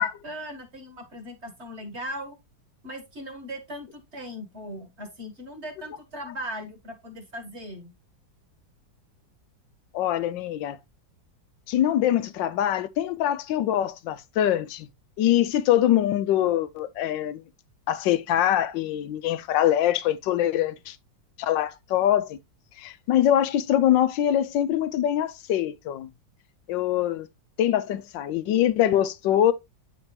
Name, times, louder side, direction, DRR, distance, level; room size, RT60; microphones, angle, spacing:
voice 1, 0.0-2.4 2.8-7.9, equal, 40° right, 1.8 m, -38 dB
voice 2, 9.9-10.8 11.7-14.9 15.2-17.4 17.9-21.0 21.4-22.4 22.8-26.1 26.7-27.3 27.6-29.5, left 11 dB, 85° left, 1.3 m, -23 dB
8.9 x 4.9 x 2.9 m
omnidirectional pair, 2.0 m